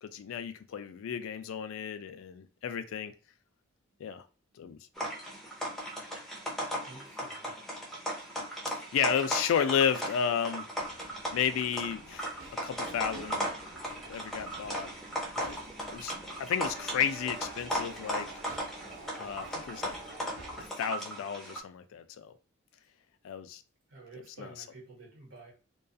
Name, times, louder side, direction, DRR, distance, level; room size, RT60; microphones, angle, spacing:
voice 1, 0.0-3.1 4.0-4.2 4.6-4.8 8.7-10.7 11.3-12.3 12.6-13.5 14.0-14.9 15.4-15.6 15.9-16.1 16.4-18.3 19.2-20.0 20.6-22.3 23.2-23.6 24.4-24.6, left 8 dB, 80° left, 0.3 m, -32 dB
sound 1, 5.0-21.6, equal, ahead, 0.4 m, -37 dB
voice 2, 6.8-7.5 23.9-25.5, right 2 dB, 90° right, 1.0 m, -50 dB
sound 2, 10.8-20.7, right 2 dB, 65° right, 0.8 m, -48 dB
2.3 x 2.3 x 2.5 m
head